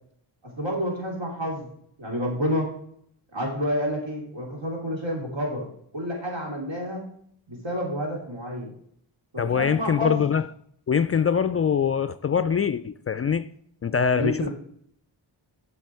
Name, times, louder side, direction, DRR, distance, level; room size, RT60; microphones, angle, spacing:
voice 1, 0.4-1.7 2.0-2.7 3.3-7.0 7.5-8.7 9.3-10.2 14.1-14.5, equal, 65° right, 3.6 m, -29 dB
voice 2, 9.4-10.4 10.9-13.5 13.8-14.5, left 7 dB, 30° left, 0.4 m, -23 dB
7.5 x 5.9 x 4.7 m
cardioid pair, 50°, 50 cm